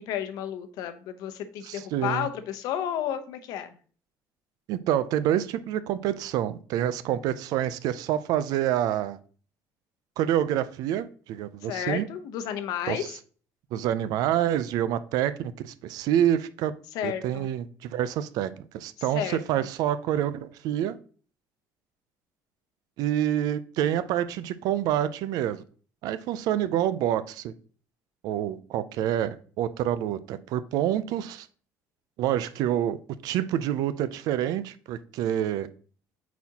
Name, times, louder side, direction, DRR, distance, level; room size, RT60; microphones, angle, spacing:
voice 1, 0.0-3.7 11.6-13.0 16.9-17.5 19.1-19.4, left 10 dB, 80° left, 0.8 m, -32 dB
voice 2, 1.6-2.3 4.7-9.2 10.2-12.1 12.9-13.1 13.7-16.7 17.0-21.0 23.0-25.6 26.0-27.5 28.2-31.5 32.2-33.0 33.2-35.7, right 11 dB, 75° right, 0.4 m, -27 dB
8.3 x 4.1 x 2.8 m
cardioid pair, 160°, 7 cm